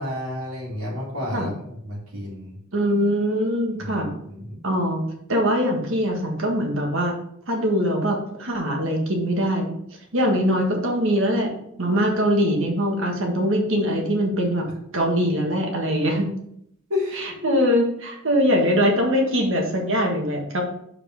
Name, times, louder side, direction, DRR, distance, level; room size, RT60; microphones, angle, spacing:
voice 1, 0.0-2.6 3.8-4.5 16.9-17.6, left 2 dB, 80° right, -7 dB, 2.6 m, -31 dB
voice 2, 2.7-4.1 4.6-5.0 5.3-7.1 7.5-9.7 10.1-11.5 11.8-14.7 14.9-16.3 17.1-20.6, equal, 65° right, 1 dB, 1.5 m, -22 dB
5.1 x 4.2 x 5.2 m, 0.72 s
head